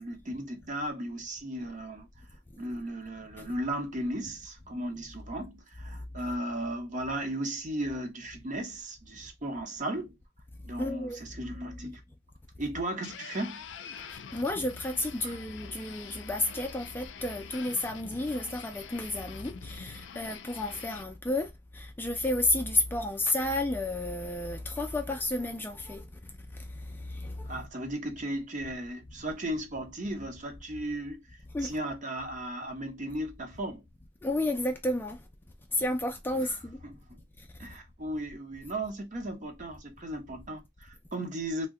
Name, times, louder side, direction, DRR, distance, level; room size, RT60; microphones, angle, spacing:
voice 1, 0.0-2.1 2.6-10.2 10.6-12.0 12.6-13.6 15.2-15.3 15.8-16.0 27.5-31.2 31.6-33.8 36.3-36.6 36.8-37.2 37.6-41.7, right 1 dB, 45° right, 0.8 m, -36 dB
voice 2, 10.8-11.2 14.0-27.6 31.5-31.8 34.2-35.2 35.7-36.8 37.4-37.5, left 2 dB, 10° left, 0.3 m, -32 dB
sound 1, 13.0-21.0, left 7 dB, 75° left, 0.4 m, -46 dB
2.8 x 2.1 x 3.5 m
head